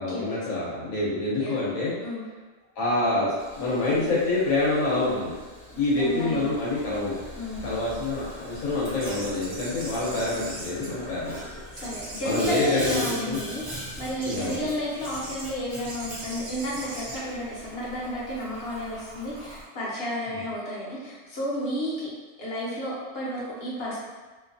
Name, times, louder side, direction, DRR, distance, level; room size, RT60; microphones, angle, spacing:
voice 1, 0.0-1.9 2.8-5.3 5.8-7.2 7.6-11.4 12.2-13.4 14.2-14.6, left 2 dB, 80° left, -7 dB, 1.1 m, -26 dB
Boiling, 3.4-19.6, equal, 25° right, 0.5 m, -42 dB
voice 2, 6.0-6.5 7.4-7.8 11.7-22.1 22.4-24.0, equal, 55° left, -6 dB, 0.9 m, -32 dB
sound 1, 9.0-11.4 11.8-13.7 14.2-14.6 15.0-15.4 15.8-18.3, right 1 dB, 60° right, 0.8 m, -40 dB
2.6 x 2.2 x 2.5 m, 1.3 s
omnidirectional pair, 1.3 m